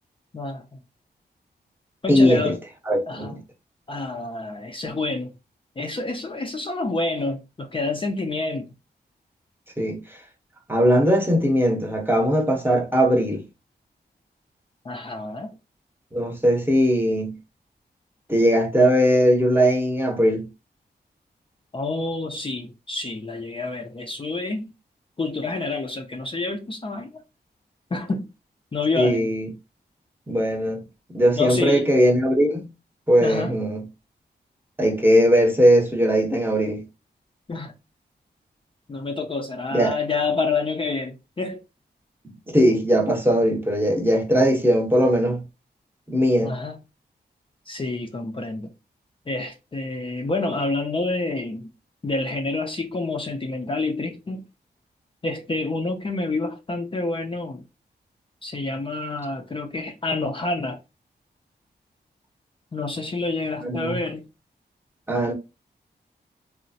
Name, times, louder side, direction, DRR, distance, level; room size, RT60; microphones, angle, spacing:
voice 1, 0.3-0.8 2.0-2.6 3.1-3.4 3.9-5.3 5.8-8.7 14.8-15.5 21.7-24.7 25.2-27.2 27.9-28.3 28.7-29.3 31.3-31.9 33.2-33.5 37.5-37.7 38.9-41.6 46.4-46.8 47.7-48.7 49.3-51.7 52.0-54.4 55.2-57.6 58.4-60.8 62.7-64.2, left 3 dB, 30° left, 0.4 m, -28 dB
voice 2, 2.1-2.6 2.9-3.4 9.8-10.0 10.7-13.4 16.1-17.4 18.3-20.5 29.0-29.5 30.3-30.8 31.1-32.6 33.1-33.8 34.8-36.8 39.7-39.9 42.2-45.4 46.1-46.5 63.6-64.0 65.1-65.3, equal, 10° right, 0.8 m, -19 dB
2.9 x 2.0 x 2.6 m
cardioid pair, 55°, 18 cm